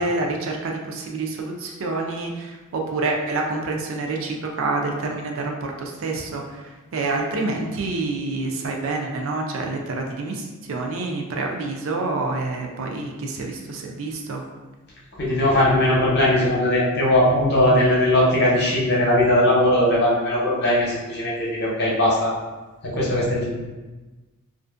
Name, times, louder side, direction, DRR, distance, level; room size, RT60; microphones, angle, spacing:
voice 1, 0.0-14.4, right 3 dB, 65° right, 1 dB, 0.4 m, -27 dB
voice 2, 15.2-22.3 22.9-23.4, left 1 dB, 45° left, -5 dB, 0.7 m, -19 dB
2.5 x 2.5 x 2.4 m, 1.2 s
head